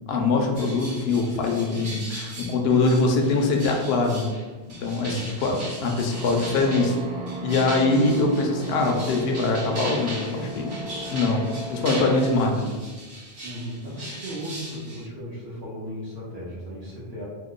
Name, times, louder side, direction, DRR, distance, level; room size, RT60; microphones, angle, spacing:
voice 1, 0.1-4.3 4.8-7.0 7.4-10.7 11.1-11.4 11.7-12.7, left 3 dB, 80° left, 2 dB, 0.8 m, -23 dB
Stripping Paint from Metal Sheet, 0.5-15.0, right 1 dB, 55° right, 1.0 m, -39 dB
voice 2, 5.0-5.5 13.4-17.2, equal, 85° right, -6 dB, 1.0 m, -36 dB
sound 1, 6.0-12.5, equal, 35° right, 0.7 m, -36 dB
2.9 x 2.1 x 3.7 m, 1.3 s
omnidirectional pair, 1.0 m